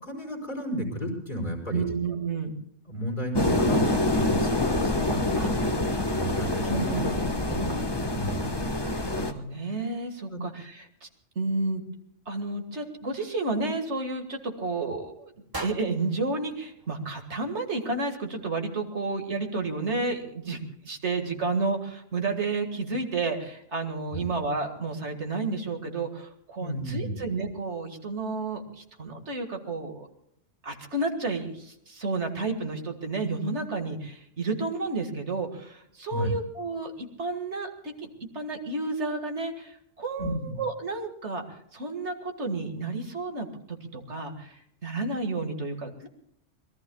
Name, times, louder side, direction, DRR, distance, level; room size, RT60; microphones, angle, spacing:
voice 1, 0.1-1.8 2.9-6.8 7.5-7.8 8.1-8.7 10.3-10.4 24.1-24.3 26.6-27.2 36.1-36.4 40.2-40.6, equal, 40° left, 3 dB, 5.2 m, -33 dB
voice 2, 1.7-2.5 5.4-5.5 6.6-7.1 8.8-11.1 11.4-11.8 12.3-15.3 15.6-30.1 30.6-38.1 38.3-46.1, right 3 dB, 65° right, 4 dB, 2.2 m, -31 dB
sound 1, 3.3-9.3, left 2 dB, 20° left, 1.2 m, -26 dB
sound 2, 15.5-17.7, right 2 dB, 20° right, 1.3 m, -42 dB
26.0 x 20.5 x 2.3 m, 0.71 s
omnidirectional pair, 1.3 m